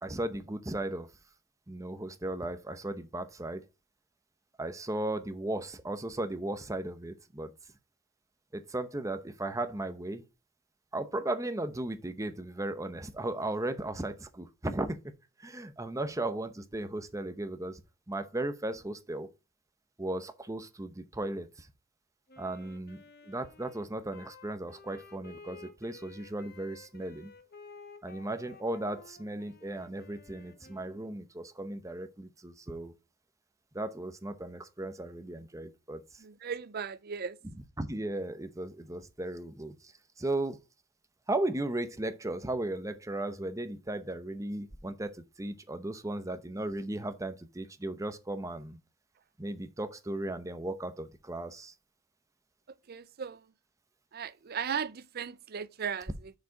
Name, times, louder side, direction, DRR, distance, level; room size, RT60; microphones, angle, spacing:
voice 1, 0.0-1.1 1.7-3.6 4.6-7.5 8.5-10.2 10.9-15.0 15.4-17.8 18.1-19.3 20.0-21.7 22.4-27.3 28.0-32.9 33.7-36.0 37.8-39.9 40.2-40.6 41.3-48.8 49.4-51.7, right 1 dB, 15° right, 0.8 m, -36 dB
Wind instrument woodwind instrument, 22.3-31.3, left 3 dB, 50° left, 1.2 m, -53 dB
voice 2, 36.2-37.4 52.7-53.5 54.1-56.3, right 7 dB, 45° right, 0.5 m, -37 dB
6.6 x 5.0 x 4.6 m
head